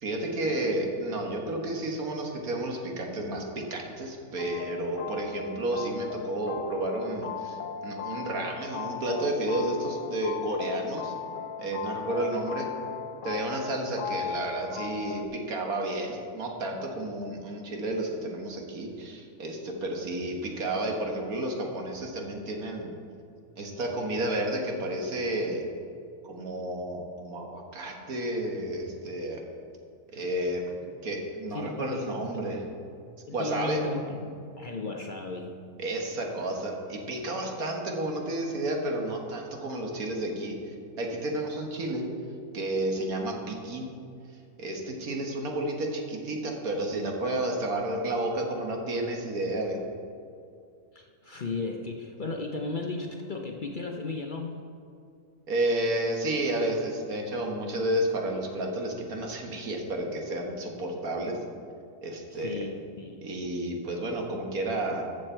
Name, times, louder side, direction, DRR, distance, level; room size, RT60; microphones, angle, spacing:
voice 1, 0.0-11.1 11.6-12.7 13.2-22.9 23.6-25.6 26.2-29.4 30.1-30.6 31.0-32.6 33.3-33.8 35.8-40.6 41.0-42.0 42.5-43.9 44.6-49.8 55.5-61.4 62.0-62.7 63.2-65.0, right 1 dB, 80° right, 1 dB, 1.8 m, -31 dB
sound 1, 4.4-15.3, left 7 dB, 75° left, 0.4 m, -37 dB
voice 2, 31.5-32.0 33.3-35.5 50.9-54.6 62.3-63.3, left 3 dB, 45° left, 1 dB, 0.7 m, -35 dB
14.0 x 6.5 x 4.4 m, 2.4 s
omnidirectional pair, 1.5 m